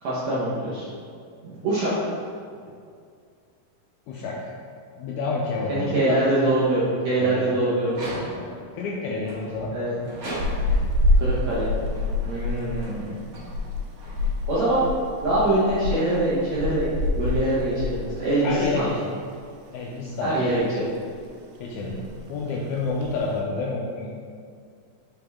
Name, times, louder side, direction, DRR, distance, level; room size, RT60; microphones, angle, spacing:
voice 1, 0.0-0.8 1.4-2.1 5.7-8.2 9.7-10.0 11.2-11.7 12.3-13.2 14.5-14.8 15.2-16.9 17.2-18.9 20.2-20.9 21.9-22.0, right 1 dB, 65° right, -9 dB, 1.9 m, -24 dB
voice 2, 4.1-4.5 5.0-6.2 7.2-8.5 8.7-9.7 10.7-10.8 18.4-19.1 19.7-20.4 21.6-22.0 22.3-24.2, left 3 dB, 85° left, -3 dB, 1.7 m, -29 dB
sound 1, 7.8-8.7 9.2-10.9 11.6-15.2, right 1 dB, 45° right, 1.1 m, -39 dB
sound 2, 10.4-18.9 19.2-19.4 19.8-20.6 21.0-21.3 21.6-21.7 21.8-22.3 22.8-23.3, left 2 dB, 85° right, 2.4 m, -27 dB
5.5 x 5.1 x 3.5 m, 2.2 s
omnidirectional pair, 4.0 m